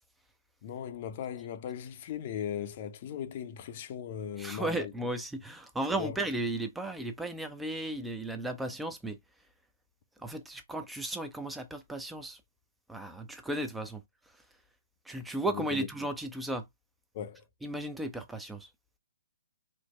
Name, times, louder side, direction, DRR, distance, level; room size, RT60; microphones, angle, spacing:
voice 1, 0.6-4.9 5.9-6.2 15.5-15.9 17.1-17.4, left 9 dB, 40° left, 0.6 m, -38 dB
voice 2, 4.4-9.2 10.2-12.4 12.9-14.0 15.1-16.7 17.6-18.7, right 1 dB, 5° right, 0.5 m, -35 dB
4.5 x 2.1 x 3.1 m
figure-of-eight pair, 130°, 0 cm